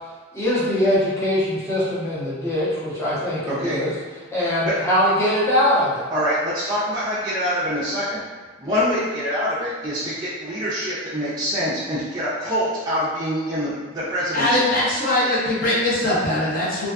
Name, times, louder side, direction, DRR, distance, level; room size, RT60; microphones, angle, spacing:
voice 1, 0.3-3.9 4.3-6.0, left 1 dB, 15° left, -10 dB, 0.8 m, -22 dB
voice 2, 3.5-3.8 4.6-4.7 6.1-8.2 8.6-14.7, equal, 20° right, -10 dB, 0.4 m, -25 dB
voice 3, 14.3-16.9, left 1 dB, 45° left, -8 dB, 0.8 m, -21 dB
2.5 x 2.3 x 2.3 m, 1.3 s
head